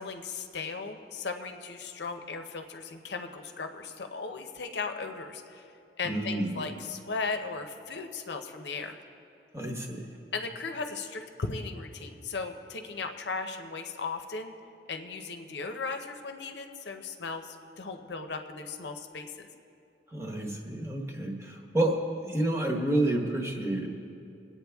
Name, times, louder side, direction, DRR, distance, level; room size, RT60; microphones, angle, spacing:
voice 1, 0.0-5.6 6.0-9.0 10.3-14.5 14.9-19.5, left 4 dB, 75° left, 6 dB, 0.7 m, -37 dB
voice 2, 6.0-6.6 9.5-10.1 20.1-23.9, right 1 dB, 15° right, 0 dB, 1.2 m, -29 dB
21.0 x 8.7 x 3.5 m, 2.6 s
head